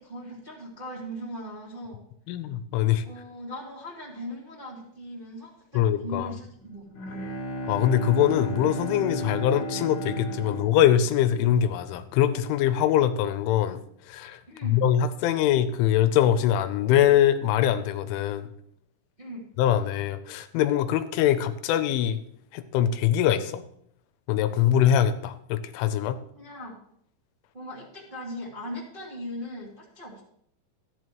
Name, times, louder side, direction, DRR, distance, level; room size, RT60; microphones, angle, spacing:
voice 1, 0.0-2.0 3.0-7.2 14.5-14.8 19.2-19.4 26.3-26.8 27.5-30.2, equal, 20° right, -6 dB, 1.4 m, -39 dB
voice 2, 2.3-3.0 5.7-6.3 7.7-13.8 14.1-18.5 19.6-22.2 22.5-23.6 24.3-26.2, left 10 dB, 90° left, 10 dB, 3.2 m, -23 dB
Bowed string instrument, 6.6-12.1, right 1 dB, 45° left, 2.4 m, -34 dB
14.0 x 10.5 x 3.1 m, 0.69 s
omnidirectional pair, 5.5 m